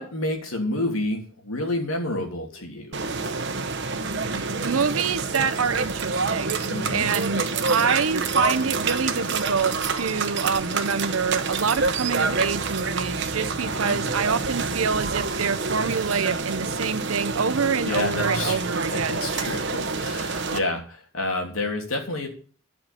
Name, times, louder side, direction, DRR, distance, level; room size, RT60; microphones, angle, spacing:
voice 1, 0.0-3.0 6.7-7.1 13.6-14.0 17.8-18.6 18.9-22.3, left 2 dB, 80° left, 3 dB, 3.2 m, -29 dB
sound 1, 2.9-20.6, right 4 dB, 55° right, 1.1 m, -27 dB
voice 2, 4.6-6.5 6.9-7.4 7.7-19.2, right 5 dB, 80° right, 11 dB, 0.8 m, -26 dB
11.0 x 5.9 x 8.6 m, 0.41 s
head